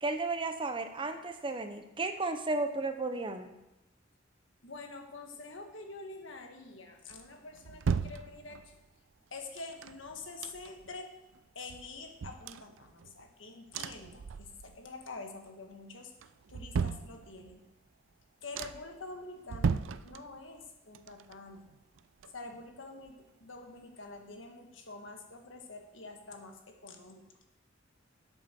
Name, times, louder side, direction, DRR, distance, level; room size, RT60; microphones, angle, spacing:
voice 1, 0.0-3.5, right 3 dB, 25° right, 8 dB, 0.8 m, -34 dB
voice 2, 4.6-8.8 9.3-11.1 11.5-16.1 16.5-17.6 18.4-21.7 22.3-27.3, left 3 dB, 80° left, 4 dB, 1.5 m, -47 dB
sound 1, 7.1-8.9 9.6-11.0 11.3-11.4 11.7-13.3 13.7-14.9 15.2-15.7 16.2-17.7 18.1-18.2 18.5-19.0 19.4-20.7 20.9-22.8 23.1-23.2, right 5 dB, 80° right, 0.4 m, -37 dB
11.5 x 8.1 x 4.4 m, 0.95 s
head